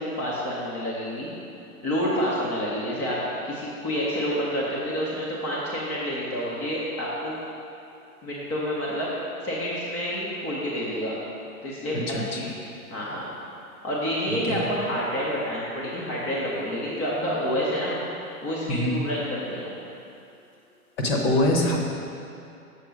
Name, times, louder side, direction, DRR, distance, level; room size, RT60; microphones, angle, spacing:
voice 1, 0.0-1.3 1.8-7.4 8.2-9.1 9.4-11.2 11.6-12.0 12.3-12.5 12.9-13.3 13.8-18.0 18.4-19.7, equal, 15° left, -6 dB, 0.5 m, -28 dB
voice 2, 12.1-12.4 14.3-14.6 17.2-17.4 18.7-19.0 21.0-21.9, left 1 dB, 40° left, 0 dB, 1.1 m, -24 dB
6.9 x 4.4 x 6.2 m, 2.6 s
hypercardioid pair, 145°, 45 cm